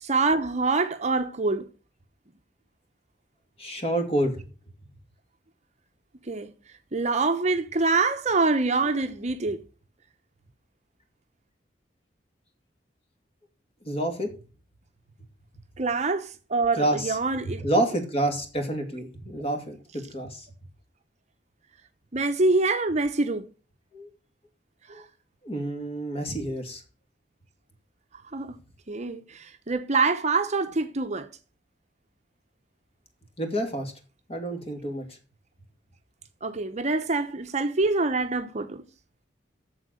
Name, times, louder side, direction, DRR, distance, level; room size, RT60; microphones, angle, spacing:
voice 1, 0.0-1.7 6.3-6.5 6.9-9.6 15.8-17.7 22.1-23.5 24.9-25.0 28.3-28.6 28.9-31.3 36.4-38.8, right 3 dB, 40° right, 0.9 m, -25 dB
voice 2, 3.6-4.4 13.8-14.3 16.8-17.2 17.6-19.8 20.1-20.5 23.9-24.1 24.9-25.0 25.4-26.8 33.4-33.9 34.3-35.2, right 1 dB, 30° left, 2.5 m, -28 dB
7.9 x 7.2 x 7.8 m
head